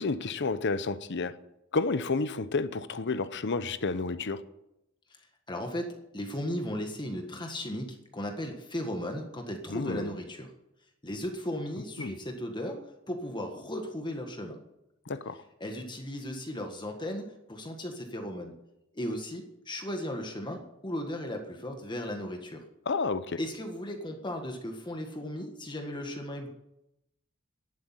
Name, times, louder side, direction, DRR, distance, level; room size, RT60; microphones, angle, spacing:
voice 1, 0.0-1.3 1.7-4.4 9.7-10.1 12.0-12.1 15.1-15.4 22.9-23.4, left 3 dB, 60° left, 0.8 m, -30 dB
voice 2, 5.5-10.5 11.0-12.8 13.1-14.6 15.6-17.2 17.5-18.5 18.9-22.6 23.4-26.5, left 1 dB, 20° left, 1.6 m, -36 dB
11.5 x 8.6 x 9.8 m
head